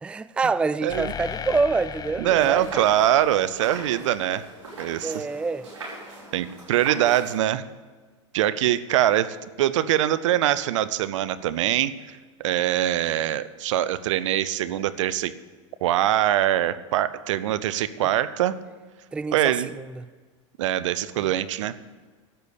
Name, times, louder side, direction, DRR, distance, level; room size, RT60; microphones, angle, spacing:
voice 1, 0.0-2.9 5.0-5.7 7.1-7.2 19.1-20.1, right 4 dB, 5° right, 0.3 m, -27 dB
voice 2, 0.8-1.1 2.2-4.5 4.8-5.3 6.3-7.6 8.3-15.3 15.8-18.6 19.3-19.7 20.6-21.7, right 12 dB, 75° right, 0.7 m, -23 dB
sound 1, 0.9-4.6, left 7 dB, 25° left, 0.7 m, -37 dB
sound 2, 2.3-7.3, right 2 dB, 90° right, 5.7 m, -41 dB
12.5 x 8.2 x 8.7 m
hypercardioid pair, 105°, 16 cm